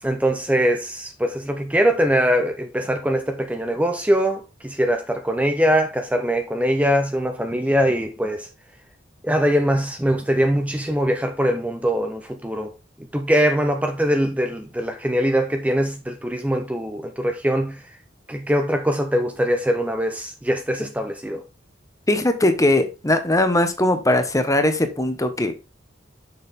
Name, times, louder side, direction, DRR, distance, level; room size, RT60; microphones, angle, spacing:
voice 1, 0.0-8.5 9.2-12.8 13.1-18.0 18.3-21.4, equal, 10° right, 0.6 m, -22 dB
voice 2, 22.1-25.5, left 1 dB, 15° left, 1.0 m, -20 dB
6.9 x 6.2 x 3.6 m
head